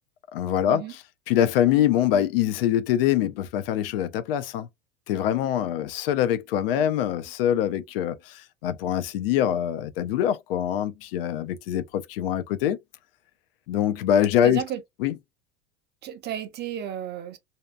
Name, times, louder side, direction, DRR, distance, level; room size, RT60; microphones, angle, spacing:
voice 1, 0.3-0.8 1.3-4.7 5.1-12.8 13.7-14.6 15.0-15.1, left 10 dB, 65° left, 0.5 m, -24 dB
voice 2, 14.4-14.8 16.0-17.4, right 10 dB, 30° right, 0.6 m, -33 dB
2.7 x 2.3 x 2.2 m
figure-of-eight pair, 75°, 32 cm